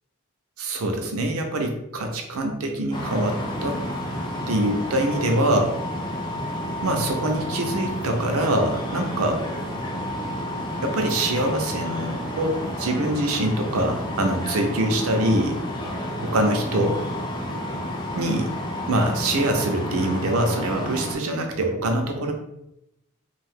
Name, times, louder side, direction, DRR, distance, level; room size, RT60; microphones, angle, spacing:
voice 1, 0.6-3.8 4.5-5.8 6.8-9.4 10.8-15.6 16.2-17.0 18.2-18.5 18.8-22.3, right 1 dB, 80° right, 4 dB, 0.6 m, -24 dB
sound 1, 2.9-21.2, left 1 dB, 20° left, 0.4 m, -30 dB
2.6 x 2.3 x 3.4 m, 0.85 s
head